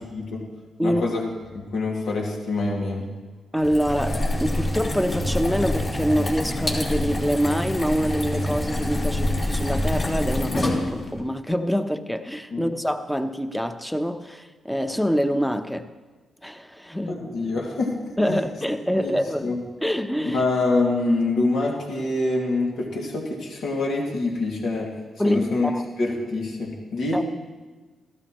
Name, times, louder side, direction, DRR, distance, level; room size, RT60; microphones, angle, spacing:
voice 1, 0.1-0.4 0.8-1.2 1.5-3.1 12.5-12.7 17.0-18.4 19.0-19.2 19.4-19.6 20.3-24.9 25.2-25.7 26.0-27.2, left 2 dB, 75° left, 2.4 m, -25 dB
voice 2, 3.5-15.9 16.4-17.2 18.2-19.5 19.8-20.4 25.2-25.8 27.1-27.2, equal, 5° left, 0.9 m, -25 dB
sound 1, 3.6-11.2, left 1 dB, 50° left, 3.1 m, -26 dB
14.5 x 13.0 x 3.1 m
supercardioid pair, 60°, 0 cm